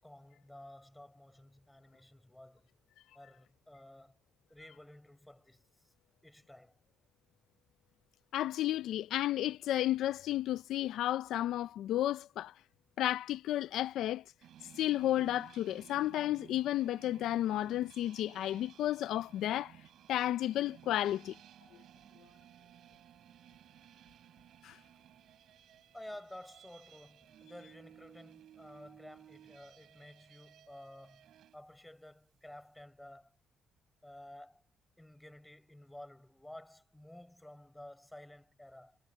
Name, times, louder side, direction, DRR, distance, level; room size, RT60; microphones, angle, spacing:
voice 1, 0.0-2.7 3.1-4.2 4.5-5.9 6.2-6.8 24.7-24.8 25.9-33.4 34.0-34.6 35.0-39.0, left 1 dB, 5° left, 6.7 m, -53 dB
voice 2, 8.3-12.5 13.0-14.2 14.8-19.8 20.1-21.3 24.6-24.8, left 13 dB, 80° left, 0.4 m, -32 dB
sound 1, 14.4-31.6, right 11 dB, 75° right, 5.2 m, -58 dB
cardioid pair, 90°, 0 cm